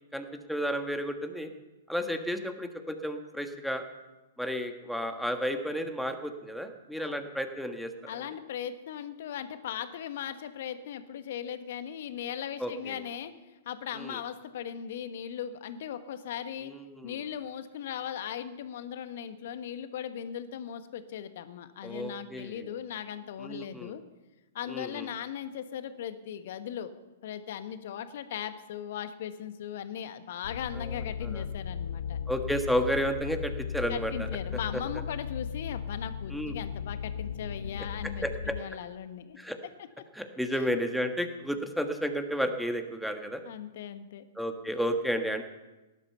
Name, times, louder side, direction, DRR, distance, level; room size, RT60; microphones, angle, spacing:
voice 1, 0.1-1.5 1.9-3.8 4.4-8.2 12.6-13.0 13.9-14.2 16.6-17.2 21.8-22.7 23.4-23.9 24.7-25.1 30.7-31.4 32.3-34.3 36.3-36.6 38.2-38.5 39.4-39.6 40.1-43.4 44.4-45.4, equal, ahead, 5 dB, 1.6 m, -32 dB
voice 2, 8.1-13.3 13.6-16.7 17.0-24.0 24.5-26.9 27.2-32.2 33.9-39.4 40.5-40.7 43.4-44.3, left 9 dB, 55° left, 10 dB, 1.3 m, -38 dB
sound 1, 30.4-38.6, left 7 dB, 70° left, 0.6 m, -36 dB
18.0 x 11.5 x 5.7 m, 1.1 s
figure-of-eight pair, 110°, 0 cm